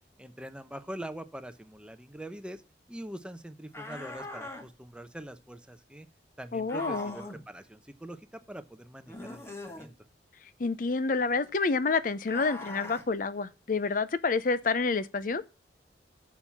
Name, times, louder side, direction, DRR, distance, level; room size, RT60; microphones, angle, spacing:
voice 1, 0.2-2.6 2.9-6.1 6.4-9.9, right 1 dB, 5° right, 0.7 m, -43 dB
sound 1, 3.7-4.7 6.7-7.4 9.1-9.9 12.2-13.1, left 2 dB, 15° left, 1.3 m, -41 dB
voice 2, 6.5-7.1 10.6-15.4, left 4 dB, 50° left, 0.6 m, -28 dB
7.2 x 6.8 x 5.8 m
head